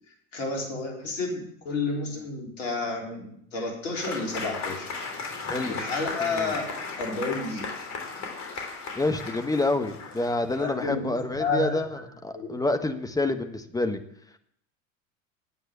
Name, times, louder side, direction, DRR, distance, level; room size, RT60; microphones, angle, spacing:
voice 1, 0.3-4.9 5.6-7.7 10.6-12.0 12.3-12.5, left 3 dB, 70° left, 0 dB, 4.0 m, -31 dB
Applause / Crowd, 4.0-10.8, left 4 dB, 45° left, 3.3 m, -36 dB
voice 2, 5.4-5.7 6.2-6.5 8.9-14.0, left 2 dB, 10° left, 7 dB, 1.4 m, -28 dB
9.8 x 8.8 x 8.6 m, 0.70 s
hypercardioid pair, 80°, 39 cm